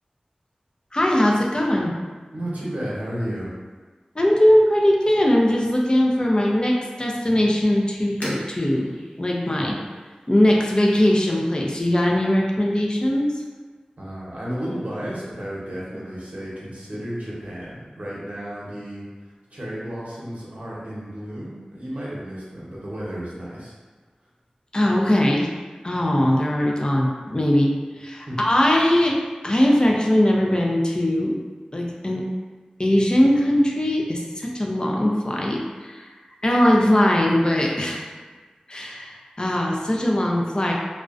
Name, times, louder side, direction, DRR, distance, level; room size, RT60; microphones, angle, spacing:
voice 1, 0.9-1.9 4.1-8.9 9.2-9.7 10.3-13.4 24.7-25.5 25.8-29.2 29.4-31.4 31.7-32.3 32.8-38.1 38.7-40.7, left 1 dB, 35° left, -1 dB, 0.4 m, -20 dB
voice 2, 2.3-3.5 9.6-9.7 14.0-23.7 28.3-28.4, equal, 65° right, -7 dB, 0.8 m, -33 dB
sound 1, 6.3-11.5, equal, 70° left, 0.8 m, -44 dB
2.4 x 2.1 x 2.4 m, 1.4 s
wide cardioid pair, 45°, 3 cm